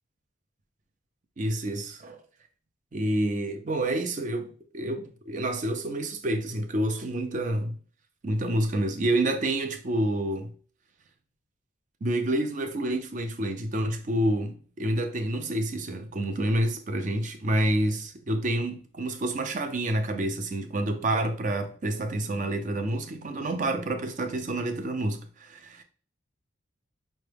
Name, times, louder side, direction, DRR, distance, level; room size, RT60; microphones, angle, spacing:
voice 1, 1.4-2.2 2.9-7.8 8.2-10.5 12.0-25.8, right 1 dB, 40° right, 0.5 m, -28 dB
5.6 x 2.1 x 3.4 m
head